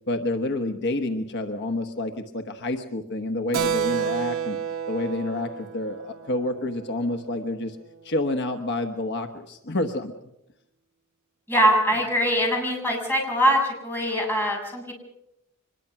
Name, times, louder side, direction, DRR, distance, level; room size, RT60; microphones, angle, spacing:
voice 1, 0.1-4.6 4.9-7.8 8.0-10.1, left 2 dB, 55° left, 6 dB, 1.2 m, -28 dB
Keyboard (musical), 3.5-7.6, right 8 dB, 75° right, 0.9 m, -30 dB
voice 2, 11.5-14.9, equal, 10° left, 0 dB, 7.2 m, -22 dB
24.0 x 21.0 x 5.9 m, 0.84 s
head